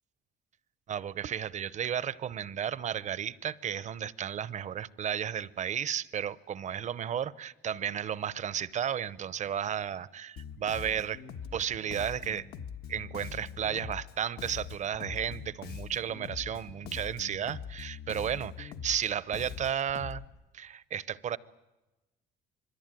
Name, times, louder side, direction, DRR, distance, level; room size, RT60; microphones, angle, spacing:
voice 1, 0.9-11.2 11.5-12.5 12.9-20.2 20.5-21.4, right 9 dB, 45° right, 0.8 m, -33 dB
Bass guitar, 10.4-20.2, left 7 dB, 70° left, 1.5 m, -43 dB
26.5 x 21.0 x 9.1 m
cardioid pair, 110°, 17 cm